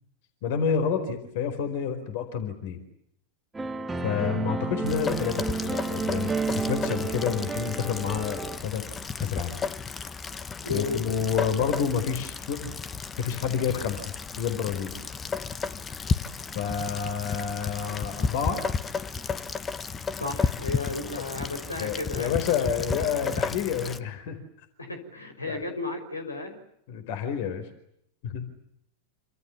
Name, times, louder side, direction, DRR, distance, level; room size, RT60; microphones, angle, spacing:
voice 1, 0.4-2.8 4.0-8.8 9.2-9.6 10.7-12.7 13.2-14.0 14.4-14.9 16.5-18.6 21.8-24.4 25.5-25.6 26.9-27.7 28.2-28.5, left 7 dB, 50° left, 9 dB, 4.7 m, -29 dB
sound 1, 3.5-8.6, right 4 dB, 10° right, 2.0 m, -31 dB
Rain, 4.8-24.0, left 5 dB, 20° left, 1.4 m, -33 dB
voice 2, 10.6-11.0 20.2-22.3 23.3-23.4 24.8-26.6, left 3 dB, 80° left, 7 dB, 6.0 m, -33 dB
28.5 x 27.0 x 7.3 m, 0.73 s
figure-of-eight pair, 90°, 0 cm